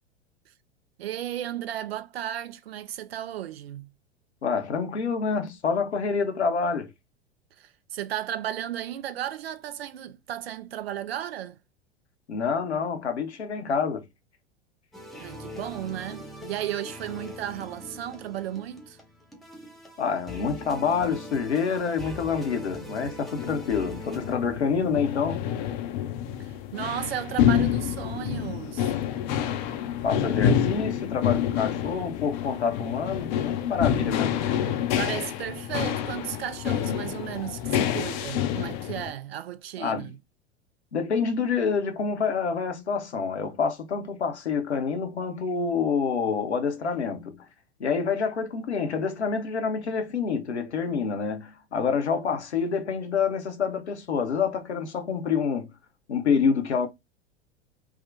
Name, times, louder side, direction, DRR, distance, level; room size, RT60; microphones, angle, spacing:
voice 1, 1.0-3.9 7.6-11.6 15.2-19.0 26.4-29.0 35.0-40.2, right 11 dB, 65° right, 0.5 m, -34 dB
voice 2, 4.4-6.9 12.3-14.0 20.0-25.4 30.0-34.4 39.8-40.1 40.9-47.5 47.8-55.7 56.1-56.9, left 6 dB, 80° left, 0.8 m, -27 dB
sound 1, 14.9-24.4, left 1 dB, ahead, 0.8 m, -42 dB
sound 2, 23.4-39.1, left 9 dB, 40° left, 0.5 m, -28 dB
3.6 x 2.1 x 2.5 m
figure-of-eight pair, 85°, 33 cm